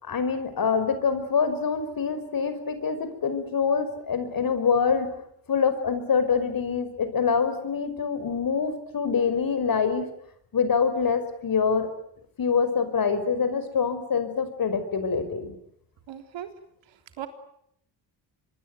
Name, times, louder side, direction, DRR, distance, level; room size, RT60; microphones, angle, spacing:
voice 1, 0.0-5.1 5.5-10.1 10.5-11.9 12.4-15.6, left 6 dB, 50° left, 11 dB, 5.6 m, -25 dB
voice 2, 16.1-16.5 16.9-17.3, right 11 dB, 75° right, 7 dB, 3.5 m, -38 dB
26.0 x 22.5 x 9.5 m, 0.72 s
cardioid pair, 90°, 45 cm